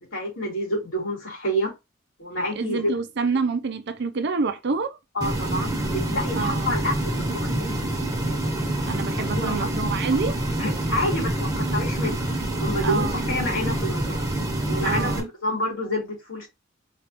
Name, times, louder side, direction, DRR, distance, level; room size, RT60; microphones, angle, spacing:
voice 1, 0.1-1.7 2.2-2.9 5.1-7.9 9.3-9.7 10.6-12.3 12.6-14.2 14.7-16.5, equal, 85° left, 3.4 m, -28 dB
voice 2, 2.6-5.0 6.3-6.7 8.8-10.4 12.8-13.2 14.8-15.3, right 4 dB, 55° right, 0.5 m, -27 dB
sound 1, 5.2-15.2, right 1 dB, 20° right, 1.3 m, -26 dB
4.9 x 3.5 x 2.9 m
head